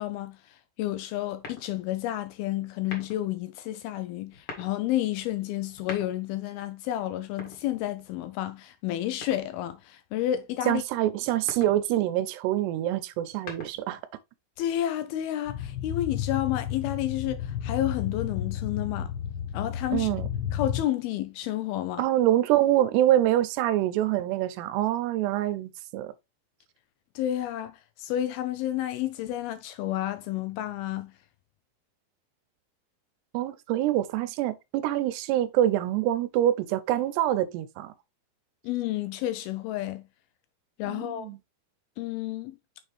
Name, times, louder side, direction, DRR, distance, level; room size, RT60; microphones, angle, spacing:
voice 1, 0.0-10.8 14.6-19.1 19.5-20.1 20.5-22.1 27.2-31.1 38.6-40.0 40.8-41.4 42.0-42.6, left 13 dB, 80° left, 2.3 m, -31 dB
sound 1, 1.4-2.0 2.8-3.3 4.3-4.8 5.6-6.4 7.2-8.2 9.2-9.8 11.3-11.8 13.1-14.0, left 3 dB, 45° left, 2.0 m, -43 dB
voice 2, 10.7-14.0 19.9-20.3 22.0-26.1 33.3-37.9 40.9-41.4, right 13 dB, 90° right, 2.8 m, -25 dB
sound 2, 15.5-20.8, left 9 dB, 65° left, 3.2 m, -32 dB
6.8 x 4.4 x 3.2 m
omnidirectional pair, 4.7 m